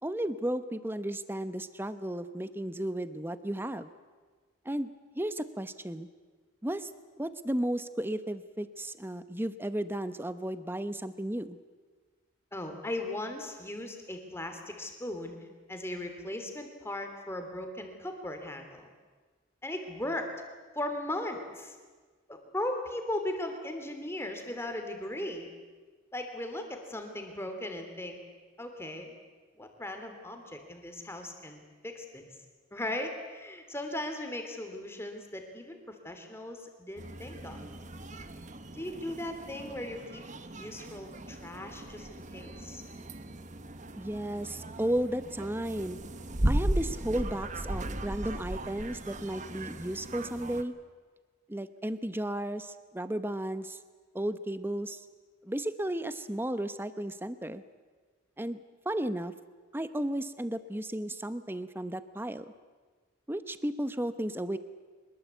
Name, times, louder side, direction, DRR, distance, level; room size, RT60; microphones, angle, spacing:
voice 1, 0.0-3.9 4.6-4.9 5.1-6.1 6.6-6.9 7.2-11.6 44.0-46.0 46.4-50.7 51.5-53.8 54.1-55.0 55.4-57.6 58.4-58.6 58.8-59.3 59.7-62.5 63.3-64.6, right 1 dB, 10° right, 12 dB, 0.9 m, -34 dB
voice 2, 12.5-15.4 15.7-18.9 19.6-20.3 20.7-21.7 22.3-25.5 26.1-28.2 28.6-29.1 29.6-32.2 32.7-37.6 38.7-40.2 40.6-42.8, left 1 dB, 15° left, 5 dB, 3.0 m, -38 dB
sound 1, 37.0-50.6, right 1 dB, 40° right, 1.2 m, -37 dB
24.0 x 21.5 x 8.2 m, 1.4 s
head